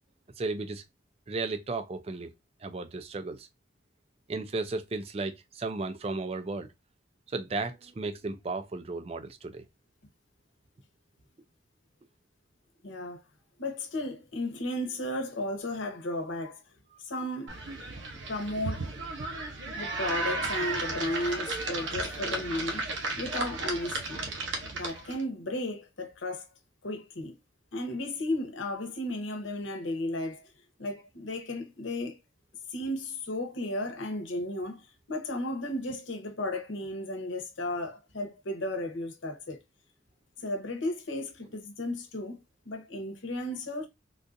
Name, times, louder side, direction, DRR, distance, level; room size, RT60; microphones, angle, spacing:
voice 1, 0.4-0.8 1.3-2.3 2.6-3.5 4.3-6.7 7.3-9.6, right 3 dB, 30° right, 0.4 m, -34 dB
voice 2, 12.8-13.2 13.6-16.6 17.0-17.5 18.3-18.9 19.7-22.9 23.2-24.2 24.7-26.5 26.8-27.3 27.7-30.4 30.8-32.2 32.7-39.6 40.4-42.4 42.6-43.9, left 1 dB, 80° left, 0.9 m, -34 dB
sound 1, 17.5-25.2, right 2 dB, 75° right, 0.8 m, -34 dB
3.7 x 2.4 x 2.5 m
head